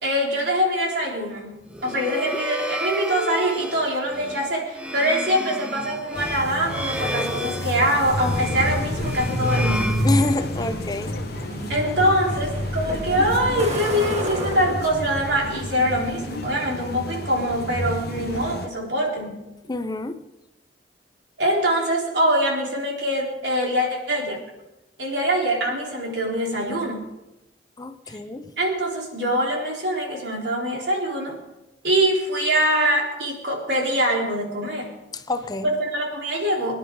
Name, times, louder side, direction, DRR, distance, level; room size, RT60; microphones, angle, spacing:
voice 1, 0.0-10.1 11.7-19.4 21.4-24.4 25.0-27.0 28.1-28.2 28.6-31.4 31.8-34.9 35.6-36.8, equal, 75° right, -2 dB, 4.0 m, -24 dB
sound 1, 1.7-10.7, equal, 5° right, 0.9 m, -32 dB
sound 2, 6.1-18.7, left 2 dB, 60° left, 1.0 m, -32 dB
Truck, 7.9-16.7, equal, 40° right, 2.1 m, -28 dB
voice 2, 10.0-11.1 19.6-20.2 27.8-28.5 35.1-35.7, left 2 dB, 25° left, 9 dB, 0.7 m, -27 dB
24.5 x 10.5 x 3.9 m, 0.97 s
head